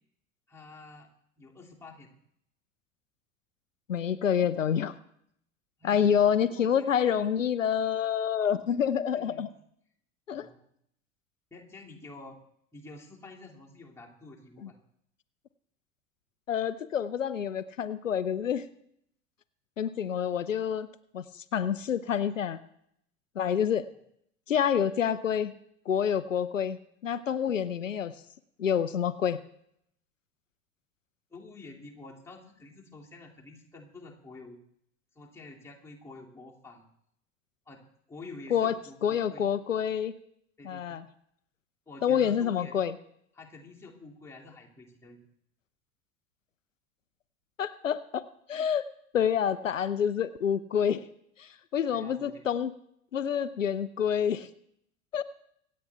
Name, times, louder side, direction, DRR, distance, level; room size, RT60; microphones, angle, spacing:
voice 1, 0.5-1.1 1.4-2.1 5.8-7.3 9.1-9.5 10.3-10.7 11.5-12.4 12.7-14.7 31.3-34.6 35.1-36.8 37.7-37.8 38.1-39.5 40.6-41.0 41.9-42.7 43.3-45.2 51.9-52.4, left 3 dB, 5° left, -3 dB, 2.6 m, -48 dB
voice 2, 3.9-4.9 5.8-9.5 10.3-10.5 14.6-14.7 16.5-18.6 19.8-20.9 21.1-22.6 23.4-23.9 24.5-25.5 25.9-28.1 28.6-29.4 38.5-38.7 39.0-40.1 40.6-41.0 42.0-43.0 47.6-48.2 48.5-48.8 49.1-51.0 51.4-52.7 53.1-54.5 55.1-55.2, left 8 dB, 80° left, 14 dB, 0.7 m, -27 dB
25.5 x 8.6 x 3.4 m, 0.71 s
figure-of-eight pair, 75°, 38 cm